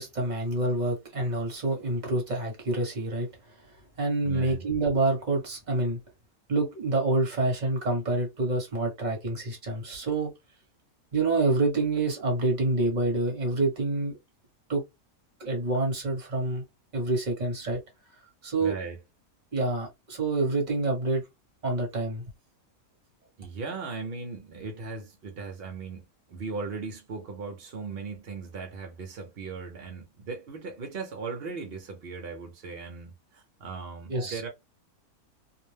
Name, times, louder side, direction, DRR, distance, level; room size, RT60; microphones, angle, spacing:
voice 1, 0.0-3.3 4.0-6.0 6.5-10.3 11.1-14.2 14.7-14.8 15.4-16.6 16.9-17.8 18.4-18.7 19.5-21.2 21.6-22.2 34.1-34.4, right 2 dB, 30° right, 1.1 m, -27 dB
voice 2, 4.2-4.7 18.6-19.0 23.4-34.5, right 4 dB, 55° right, 0.8 m, -38 dB
2.6 x 2.1 x 3.2 m
omnidirectional pair, 1.6 m